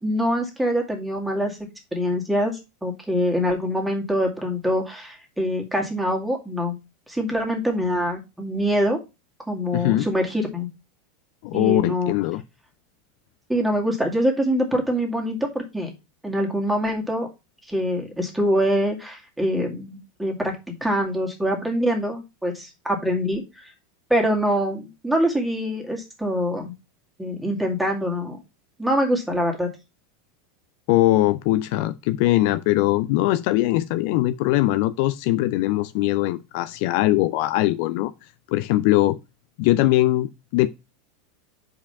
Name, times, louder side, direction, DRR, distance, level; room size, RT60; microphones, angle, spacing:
voice 1, 0.0-1.6 1.9-6.8 7.1-9.0 9.5-10.7 11.5-12.2 13.5-15.9 16.2-17.3 17.7-20.5 20.8-23.7 24.1-26.7 27.2-28.4 28.8-29.7, equal, 5° right, 2.1 m, -24 dB
voice 2, 9.7-10.1 11.4-12.4 30.9-38.1 38.5-39.2 39.6-40.7, left 16 dB, 55° left, 0.4 m, -21 dB
5.2 x 5.0 x 5.6 m
figure-of-eight pair, 85°, 0 cm